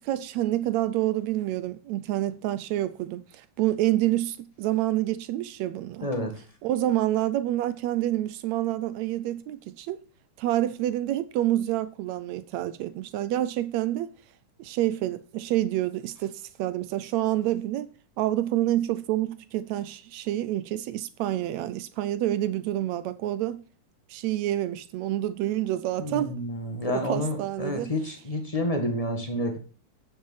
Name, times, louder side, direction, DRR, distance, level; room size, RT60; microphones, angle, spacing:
voice 1, 0.0-6.1 6.6-10.0 10.4-14.1 14.6-17.9 18.2-23.6 24.1-26.3 26.9-27.9, right 14 dB, 80° right, 1.6 m, -28 dB
voice 2, 6.0-6.4 26.0-29.6, left 1 dB, 25° left, 0.7 m, -29 dB
8.9 x 7.8 x 7.3 m
omnidirectional pair, 3.7 m